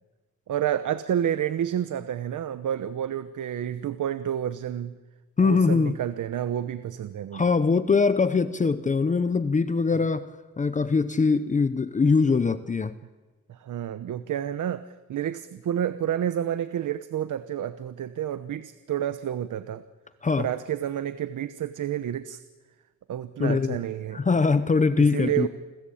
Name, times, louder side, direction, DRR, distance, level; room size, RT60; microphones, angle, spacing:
voice 1, 0.5-5.0 5.4-7.4 13.5-14.8 15.1-19.8 20.4-22.4 23.1-24.2 25.0-25.5, right 10 dB, 85° right, 1.1 m, -29 dB
voice 2, 5.4-6.0 7.3-12.9 20.2-20.5 23.4-23.8 24.1-25.5, left 4 dB, 25° left, 0.8 m, -22 dB
29.5 x 21.5 x 8.6 m
wide cardioid pair, 180°, 30 cm